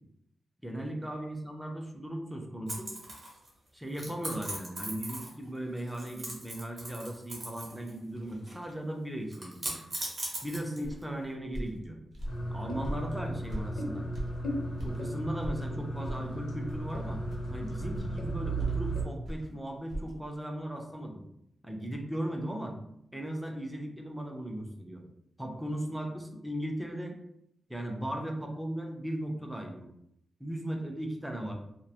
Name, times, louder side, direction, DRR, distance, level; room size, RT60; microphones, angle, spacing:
voice 1, 0.6-2.9 3.7-9.8 10.4-12.0 12.5-14.1 14.8-17.2 17.5-21.2 21.6-22.8 23.1-25.0 25.4-27.1 27.7-29.9 30.4-31.5, right 1 dB, 5° right, 2 dB, 0.3 m, -37 dB
sound 1, 2.7-3.5 3.9-5.5 5.7-7.9 8.2-8.7 9.3-11.0, right 1 dB, 30° right, 0.8 m, -39 dB
sound 2, 10.8-15.0 15.4-20.1, right 1 dB, 60° right, 0.6 m, -40 dB
sound 3, 12.3-19.0, right 1 dB, 75° left, 0.6 m, -35 dB
2.3 x 2.1 x 2.7 m, 0.78 s
wide cardioid pair, 165°, 0 cm